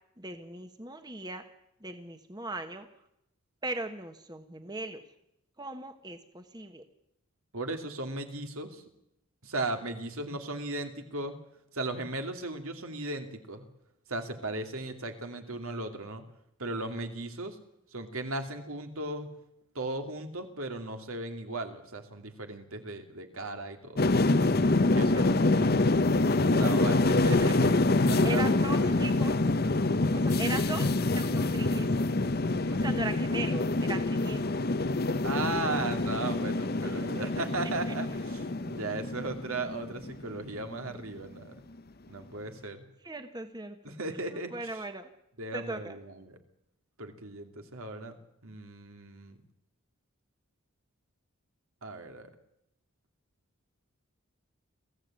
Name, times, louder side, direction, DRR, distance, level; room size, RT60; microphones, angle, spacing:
voice 1, 0.2-1.4 1.8-2.9 3.6-5.0 5.6-6.8 25.0-25.2 26.9-27.1 28.2-29.4 30.1-31.9 32.7-34.6 36.8-36.9 37.9-38.0 43.0-43.9 44.5-45.1 45.5-46.0, right 2 dB, 20° right, 8 dB, 1.3 m, -38 dB
voice 2, 7.5-8.8 9.4-11.4 11.7-13.6 14.1-16.2 16.6-17.6 17.9-19.3 19.7-24.0 24.9-25.3 26.3-29.1 35.2-41.6 42.1-42.8 43.8-44.5 45.4-46.4 47.0-48.2 48.4-49.4 51.8-52.3, right 2 dB, 75° right, 6 dB, 2.6 m, -37 dB
sound 1, 24.0-40.4 40.7-41.1, left 2 dB, 45° left, 0.8 m, -26 dB
22.0 x 15.5 x 8.8 m, 0.81 s
head